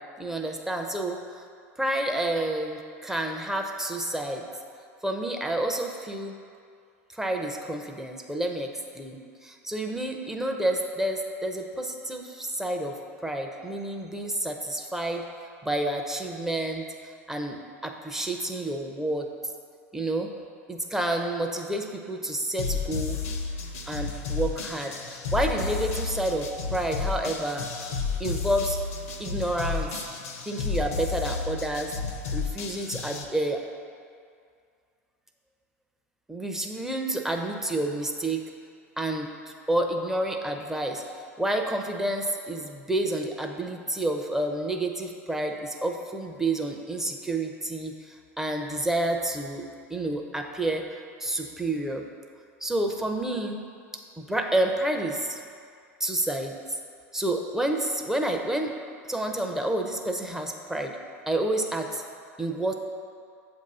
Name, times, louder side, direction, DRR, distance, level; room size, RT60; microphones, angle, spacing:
voice 1, 0.2-1.4 1.8-4.5 5.0-6.3 7.1-12.9 13.2-15.2 15.6-16.9 17.3-19.3 19.9-20.3 20.7-23.2 23.9-27.8 28.2-28.8 29.2-30.0 30.5-31.9 32.3-33.6 36.3-38.4 39.0-50.8 51.2-52.0 52.6-53.6 54.2-55.4 56.0-56.6 57.1-58.7 59.1-61.0 61.3-62.0 62.4-62.7, right 1 dB, 5° right, 3 dB, 0.6 m, -29 dB
sound 1, 22.6-33.2, left 5 dB, 70° left, 0.6 m, -32 dB
7.3 x 2.7 x 5.4 m, 2.3 s
hypercardioid pair, 90°, 8 cm